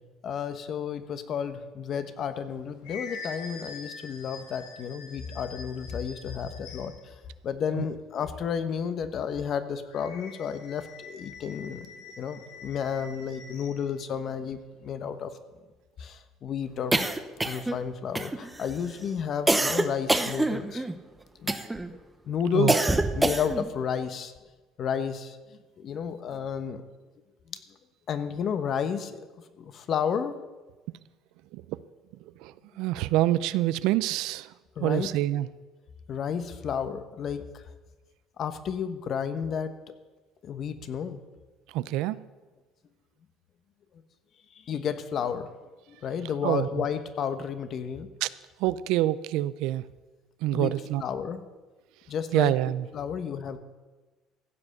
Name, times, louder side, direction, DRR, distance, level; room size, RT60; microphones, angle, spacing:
voice 1, 0.2-7.1 7.4-11.9 12.2-15.3 16.0-17.1 17.4-20.8 21.4-21.6 22.2-22.9 23.1-24.3 24.8-26.8 27.5-27.6 28.1-29.2 29.6-30.3 34.8-35.1 36.1-37.6 38.4-39.7 40.4-41.2 44.5-45.5 45.9-48.1 50.5-51.4 52.1-52.5 52.9-53.6, left 7 dB, 50° left, 10 dB, 1.1 m, -32 dB
sound 1, 2.3-7.1 9.8-13.8, left 4 dB, 90° left, 1.8 m, -45 dB
sound 2, 16.9-17.8 18.1-18.7 19.5-20.9 21.5-21.9 22.7-23.7, right 2 dB, 10° right, 0.9 m, -25 dB
voice 2, 32.4-34.5 34.8-35.5 41.7-42.2 46.4-46.8 48.2-48.3 48.6-49.8 50.4-51.0 52.3-52.9, right 15 dB, 80° right, 17 dB, 0.5 m, -26 dB
15.5 x 7.5 x 6.7 m, 1.2 s
supercardioid pair, 100°, 0 cm